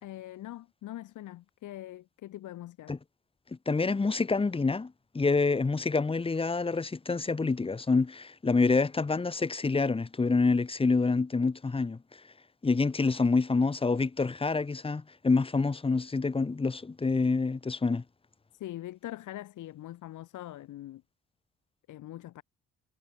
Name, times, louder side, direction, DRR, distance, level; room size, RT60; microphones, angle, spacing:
voice 1, 0.0-2.9 18.5-21.0 21.9-22.4, left 14 dB, 80° left, 2.5 m, -42 dB
voice 2, 3.7-12.0 12.6-18.0, left 4 dB, 20° left, 1.0 m, -27 dB
cardioid pair, 90°, 30 cm